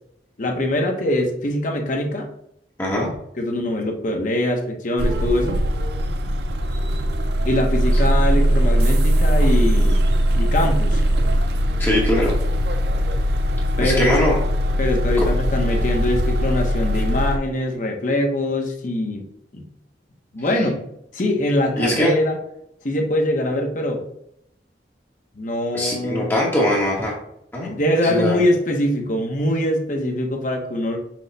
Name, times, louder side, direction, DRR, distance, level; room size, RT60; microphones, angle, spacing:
voice 1, 0.4-2.3 3.4-5.6 7.4-10.0 10.4-11.0 13.8-14.1 14.8-19.3 19.5-19.7 20.3-20.8 21.1-22.4 22.8-24.0 25.4-26.4 27.6-31.0, left 1 dB, 45° left, 2 dB, 0.8 m, -23 dB
voice 2, 2.8-3.1 11.8-12.4 13.8-14.4 15.2-15.3 20.5-20.6 21.8-22.1 25.7-27.1 27.5-28.4, left 1 dB, 15° left, -4 dB, 0.9 m, -21 dB
sound 1, 5.0-17.4, equal, 65° right, 0.5 m, -20 dB
6.0 x 2.1 x 3.9 m, 0.75 s
head